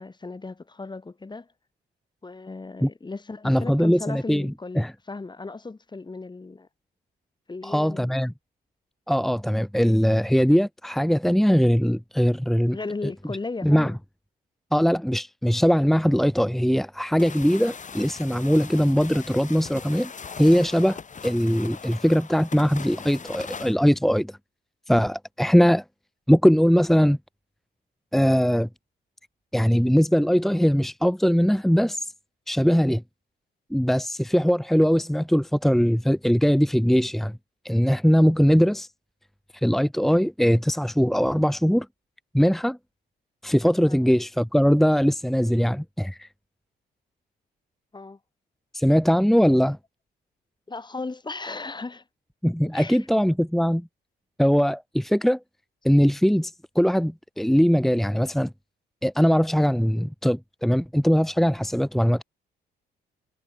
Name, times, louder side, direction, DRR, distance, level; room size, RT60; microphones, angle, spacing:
voice 1, 0.0-1.5 2.2-6.7 7.5-8.1 12.7-14.0 43.9-44.0 47.9-48.2 50.7-52.0 52.7-53.0, left 3 dB, 20° left, 3.4 m, -36 dB
voice 2, 3.4-4.9 7.6-8.3 9.1-12.8 13.0-13.1 13.6-13.9 14.7-20.1 20.4-24.4 24.9-25.8 26.3-27.2 28.1-28.7 29.5-32.1 32.5-33.0 33.7-37.4 37.6-38.9 39.5-41.9 42.3-42.8 43.4-46.3 48.7-49.8 52.4-53.9 54.4-55.4 55.8-58.5 59.0-62.2, equal, ahead, 2.1 m, -21 dB
sound 1, 17.2-23.8, left 6 dB, 40° left, 2.8 m, -40 dB
cardioid pair, 90°, 20 cm